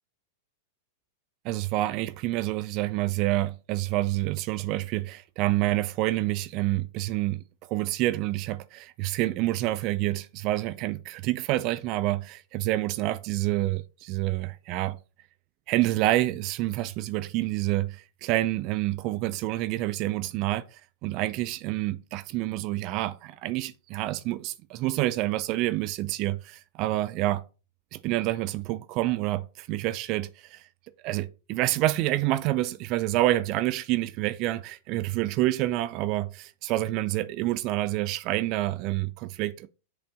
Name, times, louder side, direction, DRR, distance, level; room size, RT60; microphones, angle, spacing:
voice 1, 1.4-15.0 15.7-27.4 27.9-30.7 31.0-39.7, right 16 dB, 40° right, 0.4 m, -28 dB
7.7 x 3.4 x 3.8 m
figure-of-eight pair, 95°, 0 cm